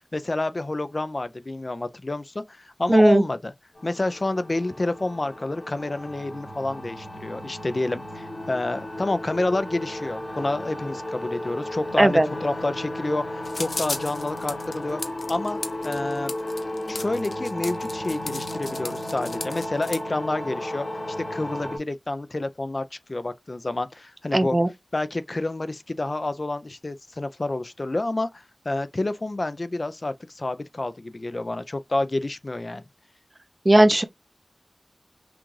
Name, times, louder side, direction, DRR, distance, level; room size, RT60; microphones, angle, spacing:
voice 1, 0.1-3.5 3.8-15.0 15.3-16.3 16.9-24.6 24.9-32.8, left 2 dB, 50° left, 0.5 m, -29 dB
voice 2, 2.9-3.2 12.0-12.3 24.3-24.7 33.6-34.0, right 1 dB, 35° right, 0.7 m, -16 dB
sound 1, 3.8-21.8, left 1 dB, 70° left, 2.6 m, -34 dB
sound 2, 13.4-20.0, left 3 dB, 90° left, 0.8 m, -35 dB
6.0 x 2.5 x 3.2 m
wide cardioid pair, 65°, 0 cm